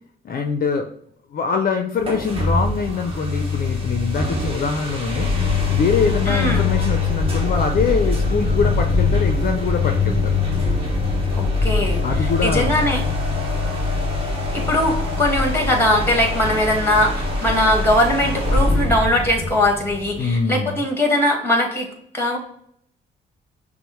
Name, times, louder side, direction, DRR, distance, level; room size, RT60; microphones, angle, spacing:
voice 1, 0.2-0.9 1.3-5.3 5.7-10.3 12.0-12.8 20.2-20.8, left 5 dB, 50° left, 5 dB, 0.5 m, -23 dB
sound 1, 2.0-20.5, left 3 dB, 30° right, 1.2 m, -22 dB
voice 2, 6.3-6.7 11.3-13.0 14.5-21.9 22.1-22.4, left 1 dB, 10° left, 2 dB, 1.6 m, -20 dB
5.9 x 2.1 x 3.1 m, 0.68 s
cardioid pair, 90°, 20 cm